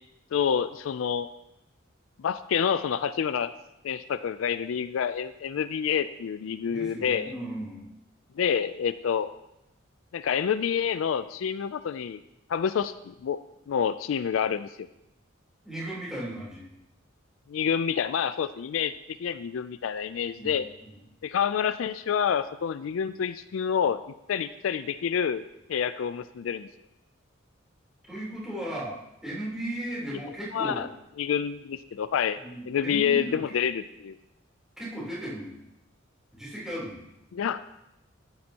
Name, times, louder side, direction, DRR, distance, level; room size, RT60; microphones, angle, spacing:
voice 1, 0.3-1.3 2.2-3.5 3.8-7.3 8.4-9.3 10.1-12.2 12.5-13.4 13.7-14.9 17.5-18.9 19.2-20.7 21.2-24.0 24.3-25.4 25.7-26.7 30.5-30.9 31.2-32.4 32.7-34.2 37.3-37.6, left 7 dB, 75° left, 13 dB, 0.4 m, -28 dB
voice 2, 6.7-7.9 15.6-16.7 20.4-20.9 28.1-29.0 29.2-30.8 32.4-33.4 34.8-35.6 36.3-37.1, right 1 dB, 5° right, -8 dB, 3.6 m, -36 dB
12.0 x 9.7 x 2.9 m, 0.88 s
head